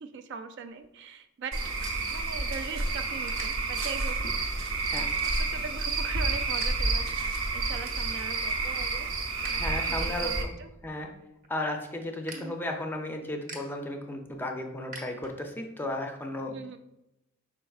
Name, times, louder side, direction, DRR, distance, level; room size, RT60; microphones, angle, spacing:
voice 1, 0.0-1.6 2.1-4.2 5.0-5.1 5.4-9.1 9.5-10.7 12.3-12.6 16.5-16.8, right 5 dB, 60° right, 9 dB, 0.3 m, -41 dB
sound 1, 0.7-2.7 3.0-3.5 4.0-4.3 4.8-5.5 5.9-6.7 7.0-7.1 7.5-8.1 8.6-9.5 9.9-15.7, right 2 dB, 40° right, 0.8 m, -47 dB
Cricket / Frog, 1.5-10.4, right 3 dB, 75° right, 0.8 m, -30 dB
voice 2, 9.5-10.5 10.8-11.1 11.5-16.8, left 1 dB, 10° left, 3 dB, 0.4 m, -34 dB
5.0 x 4.4 x 2.3 m, 0.89 s
head